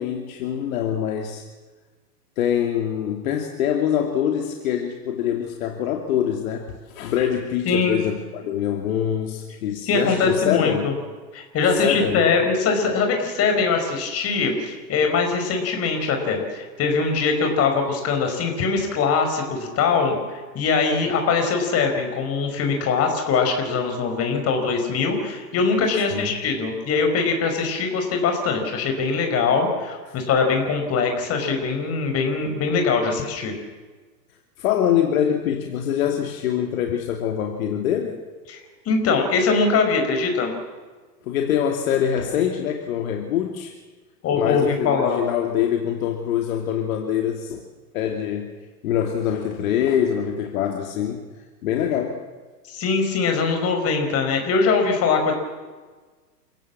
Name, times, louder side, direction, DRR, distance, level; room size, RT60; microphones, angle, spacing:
voice 1, 0.0-1.4 2.4-10.9 11.8-12.2 26.1-26.3 34.6-38.2 41.3-43.7 44.3-47.6 47.9-48.6 48.8-51.2 51.6-52.2, left 9 dB, 55° left, 3 dB, 2.8 m, -24 dB
voice 2, 7.7-8.0 9.9-10.9 11.3-33.5 38.5-38.6 38.9-40.5 44.2-45.2 52.7-55.3, left 4 dB, 30° left, 4 dB, 5.8 m, -22 dB
28.5 x 17.0 x 7.5 m, 1.4 s
hypercardioid pair, 115°, 49 cm